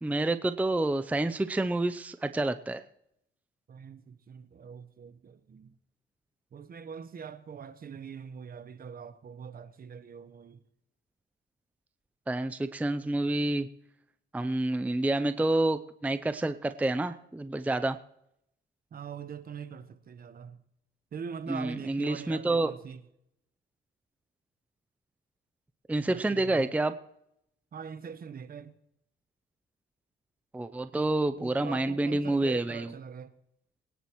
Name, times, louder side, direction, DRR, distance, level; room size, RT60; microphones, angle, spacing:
voice 1, 0.0-2.8 12.3-13.7 14.3-18.0 21.5-22.7 25.9-26.9 30.5-32.9, right 2 dB, 5° right, 0.5 m, -28 dB
voice 2, 3.7-5.8 6.5-10.6 18.9-20.6 21.1-23.0 26.1-26.7 27.7-28.8 30.9-33.3, right 6 dB, 45° right, 1.0 m, -43 dB
23.0 x 10.0 x 3.1 m
cardioid pair, 90°, 20 cm